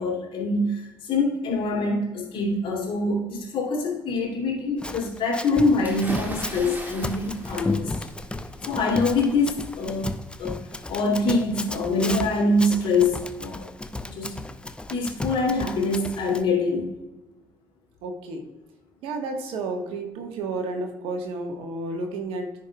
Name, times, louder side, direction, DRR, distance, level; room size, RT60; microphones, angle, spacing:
voice 1, 0.0-7.9 8.7-10.1 10.4-10.6 10.9-13.7 14.0-14.3 14.9-16.9, left 2 dB, 55° left, -2 dB, 2.5 m, -24 dB
Run, 4.8-16.4, left 2 dB, 10° left, 0.6 m, -34 dB
sound 1, 5.8-10.7, equal, 15° right, 1.9 m, -38 dB
voice 2, 18.0-18.5 19.0-22.5, right 2 dB, 65° right, 3 dB, 1.4 m, -31 dB
14.5 x 5.3 x 2.3 m, 1.0 s
figure-of-eight pair, 50°, 10 cm